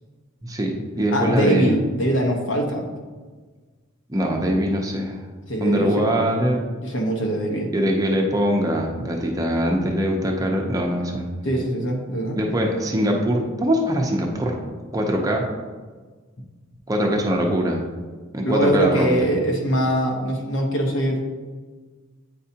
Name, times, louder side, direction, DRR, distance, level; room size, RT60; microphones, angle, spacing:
voice 1, 0.4-1.7 4.1-5.2 5.6-6.6 7.7-11.3 12.3-14.6 14.9-15.5 16.9-17.8 18.3-19.3, equal, 15° right, 0 dB, 0.6 m, -22 dB
voice 2, 1.1-2.9 5.5-6.1 6.8-7.7 11.4-12.4 18.4-21.2, right 1 dB, 65° left, 1 dB, 1.0 m, -22 dB
8.5 x 4.7 x 2.8 m, 1.4 s
head